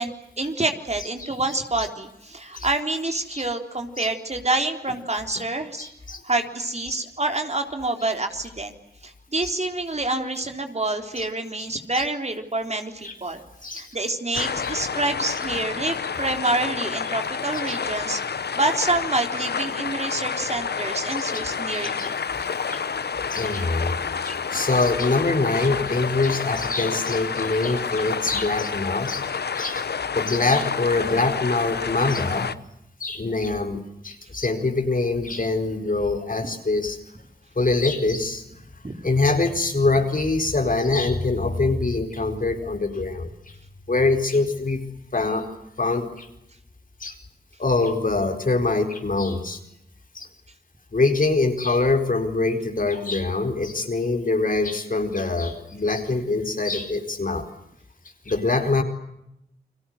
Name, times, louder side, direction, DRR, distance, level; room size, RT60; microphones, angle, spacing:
voice 1, 0.0-5.9 6.2-8.8 9.0-13.4 13.7-22.2 38.8-38.9, right 2 dB, 40° right, 5 dB, 3.7 m, -27 dB
voice 2, 5.8-6.2 6.9-7.0 11.2-11.3 11.9-12.0 13.0-13.1 13.6-13.9 14.4-14.7 21.3-21.4 21.7-22.1 22.4-22.8 23.3-24.0 24.2-29.3 29.5-29.9 30.1-32.5 33.0-37.0 37.6-38.4 39.0-43.3 43.9-44.8 45.1-45.5 45.8-46.3 47.0-47.2 47.6-49.6 50.1-50.3 50.9-57.5 58.3-58.8, left 3 dB, 55° left, 5 dB, 4.5 m, -24 dB
sound 1, 14.3-32.6, left 6 dB, 75° left, 1.0 m, -29 dB
30.0 x 22.0 x 7.9 m, 0.81 s
cardioid pair, 45°, 17 cm